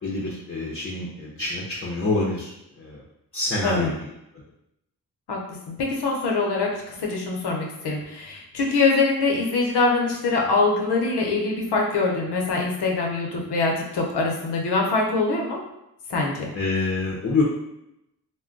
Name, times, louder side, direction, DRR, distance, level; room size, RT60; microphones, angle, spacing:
voice 1, 0.0-3.0 3.3-4.1 16.5-17.4, left 3 dB, 35° left, -4 dB, 0.7 m, -26 dB
voice 2, 5.3-15.6 16.1-16.5, left 3 dB, 75° left, 0 dB, 0.8 m, -24 dB
2.3 x 2.1 x 3.7 m, 0.84 s
cardioid pair, 75°, 40 cm